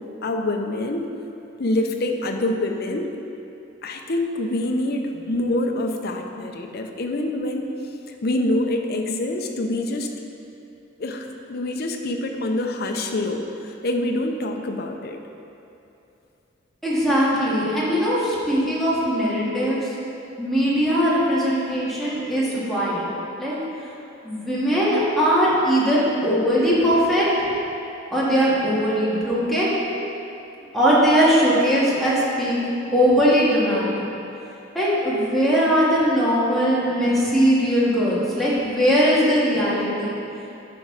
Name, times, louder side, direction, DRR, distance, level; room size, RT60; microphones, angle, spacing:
voice 1, 0.2-1.0 1.6-3.1 3.8-7.7 8.1-10.1 11.0-15.2, left 1 dB, 50° left, 4 dB, 0.7 m, -25 dB
voice 2, 16.8-19.9 20.4-23.0 23.4-23.6 24.2-27.3 28.1-29.8 30.7-32.6 32.9-34.0 34.7-40.1, equal, ahead, -9 dB, 1.9 m, -20 dB
10.5 x 6.0 x 4.0 m, 2.8 s
head